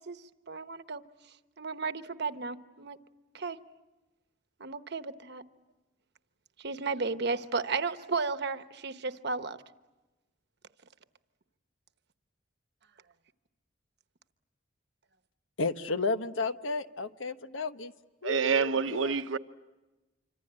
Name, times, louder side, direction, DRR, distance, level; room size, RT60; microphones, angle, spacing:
voice 1, 0.5-1.0 1.6-3.0 3.3-3.6 4.6-5.4 6.6-9.6, right 4 dB, 60° right, 1.1 m, -33 dB
voice 2, 15.6-17.9 18.2-19.2, left 3 dB, 75° left, 1.1 m, -33 dB
voice 3, 18.2-19.4, right 6 dB, 85° right, 1.0 m, -27 dB
26.5 x 25.5 x 8.8 m
head